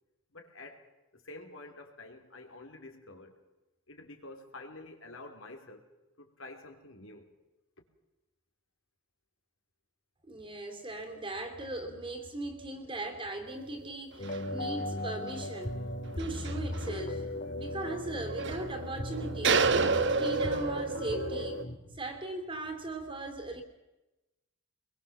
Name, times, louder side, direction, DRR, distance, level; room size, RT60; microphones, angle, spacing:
voice 1, 0.3-0.8 1.1-3.4 3.9-5.8 6.2-7.3, left 2 dB, 70° left, 4 dB, 3.4 m, -48 dB
voice 2, 10.3-15.8 16.2-17.3 17.5-19.7 20.2-21.6 21.9-23.6, right 2 dB, 25° right, 7 dB, 3.0 m, -38 dB
sound 1, 13.5-13.6 14.2-14.5 14.8-14.9 15.4-15.5 16.1-16.9 17.7-17.8 18.0-21.6, right 4 dB, 55° right, 1.1 m, -30 dB
sound 2, 14.2-21.8, left 1 dB, 40° left, 2.3 m, -37 dB
24.0 x 22.0 x 7.2 m, 1.0 s
head